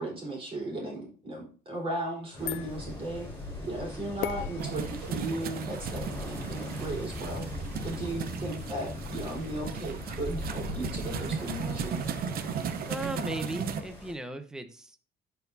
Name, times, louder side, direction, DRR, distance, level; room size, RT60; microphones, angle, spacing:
voice 1, 0.0-3.3 3.6-12.0, right 1 dB, 35° right, -2 dB, 4.3 m, -36 dB
sound 1, 2.0-8.2, left 14 dB, 75° left, 0.5 m, -44 dB
sound 2, 2.3-14.1, left 2 dB, 15° left, 3.9 m, -40 dB
sound 3, 4.6-13.8, right 7 dB, 60° right, 0.9 m, -36 dB
voice 2, 12.9-14.9, right 1 dB, 5° right, 8 dB, 0.9 m, -36 dB
14.0 x 4.7 x 2.7 m, 0.39 s
cardioid pair, 110°, 17 cm